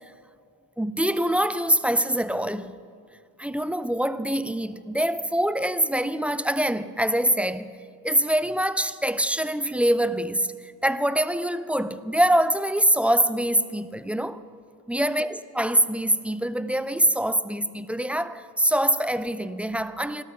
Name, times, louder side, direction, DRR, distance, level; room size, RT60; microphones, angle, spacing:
voice 1, 0.8-2.7 3.4-7.8 8.0-14.4 14.9-20.2, right 1 dB, 5° right, 0.5 m, -24 dB
16.5 x 13.0 x 6.3 m
supercardioid pair, 70°, 49 cm